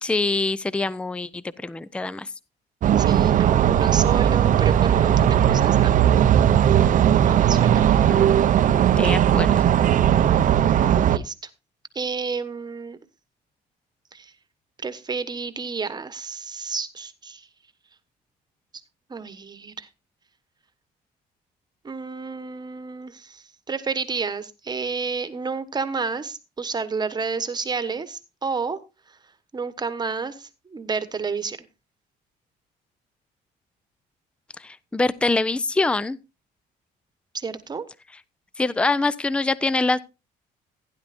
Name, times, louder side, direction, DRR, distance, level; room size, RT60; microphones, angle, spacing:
voice 1, 0.0-2.3 8.1-8.4 8.7-9.5 34.6-36.2 38.6-40.0, left 3 dB, 5° left, 0.5 m, -24 dB
sound 1, 2.8-11.2, right 10 dB, 50° right, 0.6 m, -18 dB
voice 2, 3.0-5.9 7.2-7.8 11.1-11.3 11.9-13.0 14.1-14.3 14.8-17.5 19.1-19.9 21.8-28.8 29.5-31.6 37.3-37.9, right 5 dB, 25° right, 1.2 m, -30 dB
16.0 x 10.5 x 2.5 m
cardioid pair, 110°, 17 cm